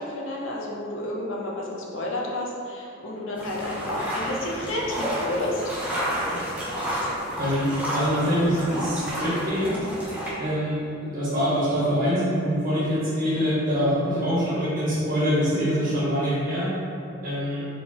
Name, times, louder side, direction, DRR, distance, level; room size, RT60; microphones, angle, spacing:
voice 1, 0.0-5.7, left 1 dB, 70° left, -3 dB, 0.7 m, -31 dB
sound 1, 3.4-10.3, equal, 5° right, 0.8 m, -30 dB
voice 2, 7.3-9.9 10.4-16.7 17.2-17.6, equal, 45° right, -9 dB, 1.5 m, -25 dB
4.3 x 3.7 x 2.9 m, 2.5 s
head